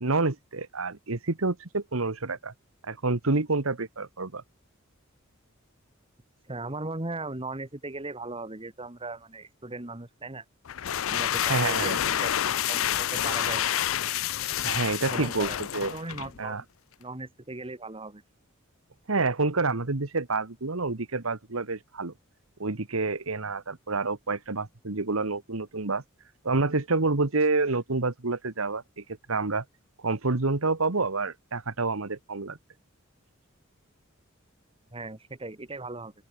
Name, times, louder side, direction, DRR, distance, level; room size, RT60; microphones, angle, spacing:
voice 1, 0.0-2.5 2.8-4.4 11.5-12.0 14.6-15.9 16.4-16.6 19.1-22.1 22.6-26.0 26.4-29.6 30.0-32.6, right 3 dB, 85° right, 1.5 m, -28 dB
voice 2, 6.5-10.4 11.1-13.7 15.1-16.7 17.0-18.2 34.9-36.1, right 2 dB, 25° right, 2.1 m, -38 dB
sound 1, 10.7-16.4, left 10 dB, 70° left, 0.5 m, -28 dB
open air
head